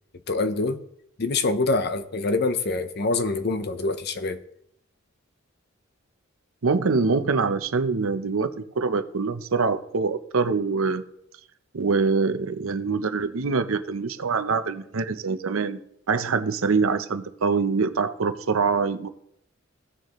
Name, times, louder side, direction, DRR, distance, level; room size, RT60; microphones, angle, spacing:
voice 1, 0.3-0.8 1.2-4.4, left 3 dB, 50° left, 0.8 m, -25 dB
voice 2, 6.6-11.0 11.7-15.8 16.1-19.1, right 4 dB, 85° right, 0.7 m, -24 dB
17.0 x 6.6 x 3.1 m
head